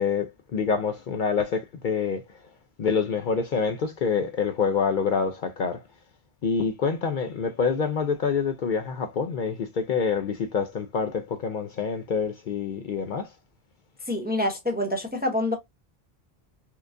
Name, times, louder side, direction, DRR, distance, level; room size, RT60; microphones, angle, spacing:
voice 1, 0.0-2.3 2.8-5.8 6.4-13.3, left 5 dB, 60° left, 0.6 m, -26 dB
voice 2, 14.1-15.6, left 1 dB, 10° right, 0.5 m, -26 dB
4.5 x 2.4 x 2.4 m
omnidirectional pair, 1.1 m